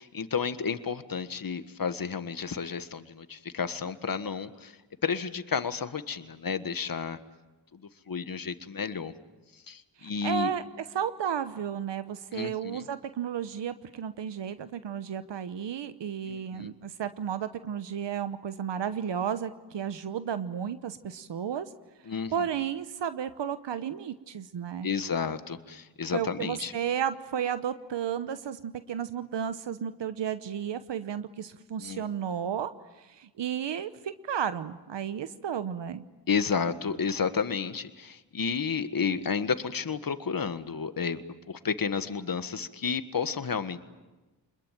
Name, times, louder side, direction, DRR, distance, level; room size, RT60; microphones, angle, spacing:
voice 1, 0.0-7.2 7.7-7.8 8.1-9.1 9.7-10.5 12.3-12.8 16.3-16.7 22.0-22.5 24.8-26.7 31.8-32.0 36.3-41.2 41.5-43.8, left 6 dB, 50° left, 11 dB, 1.6 m, -31 dB
voice 2, 10.0-10.6 10.9-21.7 22.3-24.9 26.1-32.7 33.0-36.0, right 8 dB, 80° right, 12 dB, 1.0 m, -33 dB
26.0 x 21.5 x 9.1 m, 1.1 s
cardioid pair, 60°, 42 cm